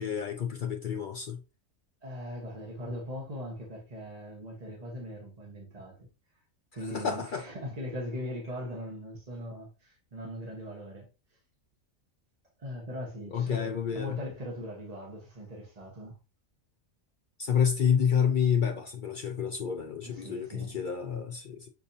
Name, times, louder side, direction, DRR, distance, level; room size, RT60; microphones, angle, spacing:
voice 1, 0.0-1.4 6.8-7.4 13.3-14.2 17.4-21.7, left 7 dB, 70° left, 0.4 m, -29 dB
voice 2, 2.0-6.1 6.7-11.1 12.6-13.7 13.9-16.2 20.0-21.2, equal, 30° right, 1.1 m, -40 dB
6.8 x 2.7 x 2.6 m
omnidirectional pair, 1.4 m